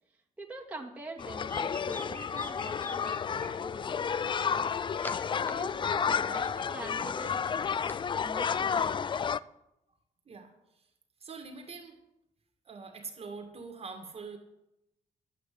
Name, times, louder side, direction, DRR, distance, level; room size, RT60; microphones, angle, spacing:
voice 1, 0.4-3.9 4.4-5.2 5.4-7.5 8.2-8.9, right 2 dB, 10° right, -3 dB, 2.4 m, -45 dB
sound 1, 1.2-9.4, left 7 dB, 35° left, 0.4 m, -31 dB
sound 2, 1.2-3.5 4.3-5.5 5.8-8.0, left 1 dB, 15° left, 1.0 m, -46 dB
voice 2, 11.2-12.0 12.7-14.4, right 4 dB, 40° right, 3 dB, 2.3 m, -43 dB
11.5 x 8.9 x 8.6 m, 0.86 s
cardioid pair, 115°, 15 cm